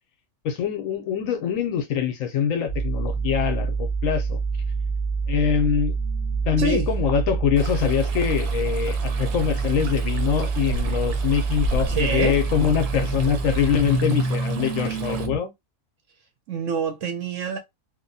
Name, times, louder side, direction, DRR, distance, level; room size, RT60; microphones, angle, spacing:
voice 1, 0.4-4.4 5.3-5.9 6.5-15.5, left 8 dB, 70° left, 0.9 m, -24 dB
sound 1, 2.7-15.4, right 4 dB, 5° right, 0.4 m, -26 dB
voice 2, 6.6-6.9 11.9-12.4 16.5-17.6, right 5 dB, 65° right, 0.8 m, -26 dB
Stream, 7.6-15.3, right 2 dB, 85° right, 1.1 m, -35 dB
2.8 x 2.1 x 2.6 m
omnidirectional pair, 1.6 m